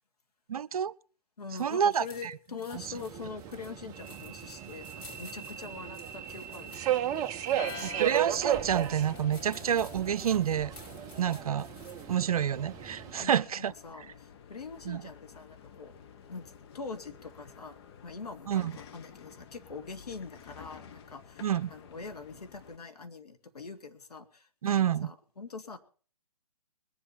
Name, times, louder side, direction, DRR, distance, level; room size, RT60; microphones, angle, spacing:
voice 1, 0.5-0.9 1.6-2.3 7.8-10.7 11.2-11.7 12.1-13.7 14.9-15.0 18.5-18.7 21.4-21.7 24.6-25.1, right 9 dB, 65° right, 0.6 m, -28 dB
voice 2, 1.4-6.8 13.2-16.0 16.3-25.8, left 4 dB, 80° left, 2.3 m, -44 dB
sound 1, 1.4-12.1, left 3 dB, 20° left, 3.7 m, -55 dB
Subway metro underground, 2.7-13.2, right 11 dB, 20° right, 0.6 m, -35 dB
sound 2, 7.6-22.8, left 7 dB, 40° left, 1.3 m, -50 dB
21.0 x 7.9 x 5.9 m
hypercardioid pair, 135°, 20 cm